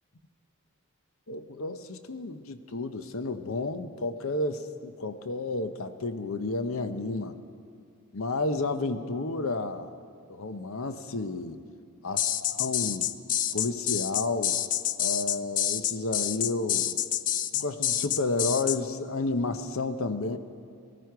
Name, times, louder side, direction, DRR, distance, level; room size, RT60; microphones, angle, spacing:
voice 1, 1.3-7.4 8.1-9.9 10.3-11.6 12.0-13.1 13.5-14.6 15.0-17.0 17.5-20.4, left 3 dB, 75° left, 9 dB, 0.8 m, -31 dB
sound 1, 12.2-18.8, left 11 dB, 35° left, 0.3 m, -28 dB
18.0 x 15.5 x 4.7 m, 2.4 s
head